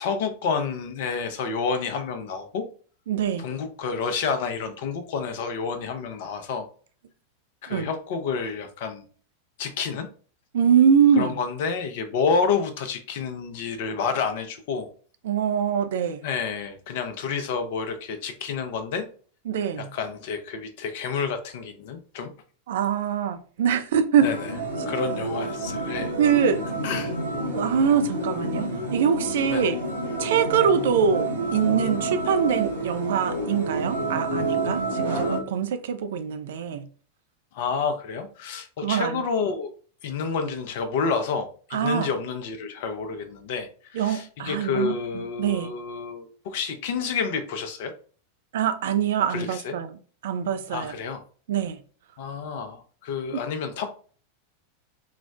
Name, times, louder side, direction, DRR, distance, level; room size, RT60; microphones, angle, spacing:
voice 1, 0.0-2.7 3.4-6.7 7.6-9.1 9.6-10.1 11.2-14.9 16.2-19.1 19.8-22.3 24.2-24.5 24.9-26.1 26.8-27.1 29.5-29.7 37.5-39.7 40.0-47.9 49.3-49.7 50.7-51.2 52.2-53.9, left 5 dB, 50° left, 0.5 m, -29 dB
voice 2, 3.1-3.5 7.7-7.9 10.5-11.4 15.2-16.2 19.5-19.9 22.7-24.3 26.2-26.6 27.5-29.7 30.2-36.9 38.8-39.2 41.7-42.1 43.9-45.7 48.5-49.9 50.2-50.9 51.5-51.8 53.3-53.4, right 7 dB, 55° right, 0.3 m, -23 dB
sound 1, 24.2-35.4, right 2 dB, 80° right, 0.9 m, -29 dB
3.9 x 2.0 x 2.3 m
figure-of-eight pair, 90°, 0 cm